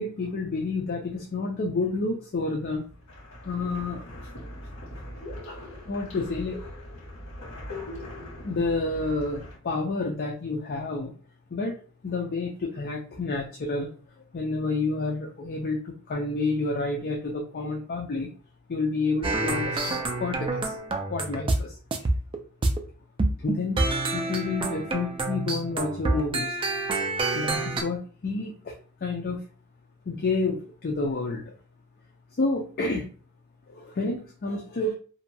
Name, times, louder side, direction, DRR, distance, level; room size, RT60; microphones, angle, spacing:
voice 1, 0.0-2.8 3.4-4.0 5.5-6.6 8.4-11.1 11.5-11.7 12.0-13.9 14.2-18.3 18.7-21.7 23.4-26.6 27.3-28.8 29.0-29.4 30.1-31.5 32.4-33.1 33.7-34.9, left 3 dB, 45° left, 0 dB, 0.4 m, -29 dB
sound 1, 2.7-9.6, left 1 dB, 60° left, 1.3 m, -41 dB
sound 2, 19.2-21.6 21.9-22.8 23.2-27.8, right 2 dB, 25° right, 0.3 m, -27 dB
2.8 x 2.1 x 2.6 m, 0.40 s
head